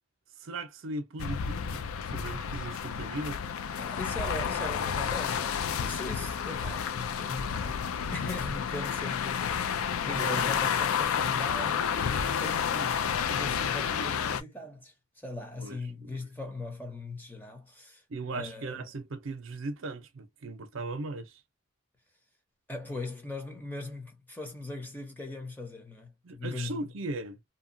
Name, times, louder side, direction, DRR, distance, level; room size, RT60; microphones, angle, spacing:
voice 1, 0.4-3.4 10.1-10.5 15.6-16.2 18.1-21.4 26.2-27.4, right 2 dB, 65° right, 0.6 m, -38 dB
sound 1, 1.2-14.4, left 7 dB, 85° left, 0.4 m, -30 dB
voice 2, 3.8-18.0 18.3-18.8 22.7-26.9, left 2 dB, 10° left, 0.8 m, -40 dB
2.8 x 2.3 x 2.6 m
head